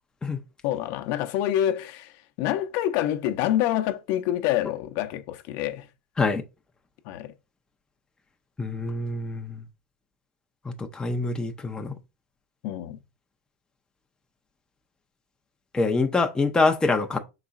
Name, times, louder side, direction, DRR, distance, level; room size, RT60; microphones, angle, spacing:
voice 1, 0.6-5.9 7.0-7.3 12.6-13.0, left 12 dB, 50° left, 0.6 m, -27 dB
voice 2, 8.6-9.6 10.8-11.9 15.7-17.2, left 3 dB, 10° left, 0.5 m, -25 dB
5.3 x 4.0 x 2.4 m
supercardioid pair, 125°, 9 cm